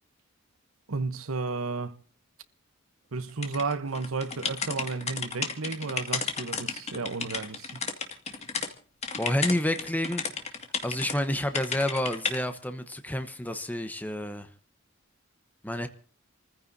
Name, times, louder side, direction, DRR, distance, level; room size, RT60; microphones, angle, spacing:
voice 1, 0.9-2.0 3.1-7.9, right 4 dB, 85° right, 1.0 m, -33 dB
sound 1, 3.4-8.7 9.0-11.2 11.5-12.4, left 5 dB, 30° left, 2.1 m, -33 dB
voice 2, 9.2-10.2 10.8-14.5 15.6-15.9, left 1 dB, 10° left, 1.0 m, -29 dB
29.0 x 15.0 x 2.7 m
head